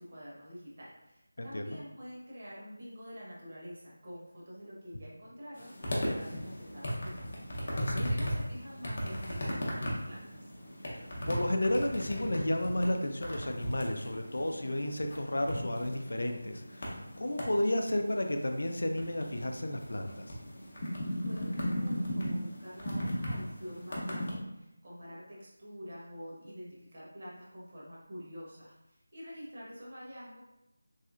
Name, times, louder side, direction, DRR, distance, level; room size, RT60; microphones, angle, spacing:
voice 1, 0.0-10.5 21.2-30.4, equal, 40° right, -6 dB, 0.9 m, -47 dB
voice 2, 1.4-1.8 7.7-8.2 10.9-20.3, left 1 dB, 70° left, 4 dB, 0.4 m, -32 dB
sound 1, 5.6-24.4, equal, 35° left, 0.7 m, -37 dB
3.1 x 2.8 x 2.4 m, 0.90 s
figure-of-eight pair, 175°, 0 cm